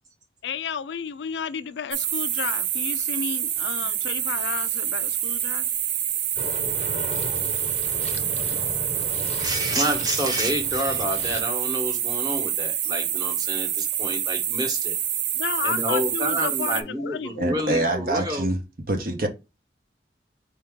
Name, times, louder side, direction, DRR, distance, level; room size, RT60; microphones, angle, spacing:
voice 1, 0.4-5.7 15.3-17.5, left 6 dB, 80° left, 0.4 m, -32 dB
sound 1, 1.9-16.8, right 10 dB, 80° right, 0.5 m, -27 dB
sound 2, 6.4-11.4, left 3 dB, 35° left, 0.6 m, -36 dB
voice 2, 9.4-15.0 15.6-18.5, equal, 20° right, 1.1 m, -28 dB
voice 3, 17.4-18.6 18.9-19.3, right 1 dB, 50° right, 0.9 m, -25 dB
4.5 x 2.8 x 3.5 m
head